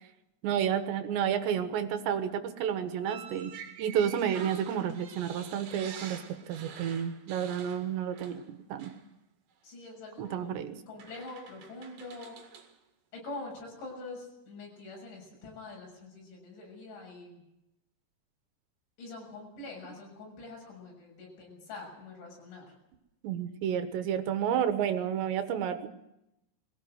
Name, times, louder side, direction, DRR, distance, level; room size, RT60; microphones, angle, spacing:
voice 1, 0.4-3.5 3.8-6.2 6.5-8.9 10.2-10.8 23.2-25.9, right 9 dB, 75° right, 8 dB, 3.5 m, -31 dB
sound 1, 3.0-8.5 8.8-9.0 10.3-10.4 11.0-12.7, right 7 dB, 60° right, 3.4 m, -47 dB
voice 2, 9.6-10.6 10.9-12.4 13.1-17.4 19.0-22.7, left 3 dB, 80° left, 0 dB, 9.1 m, -45 dB
22.0 x 16.0 x 8.0 m, 0.88 s
omnidirectional pair, 5.3 m